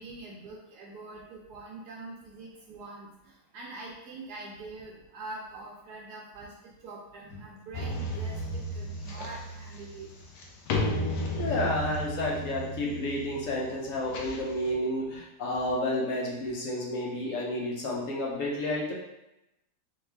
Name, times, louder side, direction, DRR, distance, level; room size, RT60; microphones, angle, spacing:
voice 1, 0.0-3.1 3.5-10.1, right 2 dB, 75° right, -3 dB, 1.1 m, -44 dB
sound 1, 7.7-14.7, left 1 dB, 85° left, 1.3 m, -34 dB
voice 2, 11.4-18.9, left 1 dB, 60° left, -3 dB, 1.0 m, -31 dB
3.4 x 3.1 x 3.3 m, 0.91 s
omnidirectional pair, 1.8 m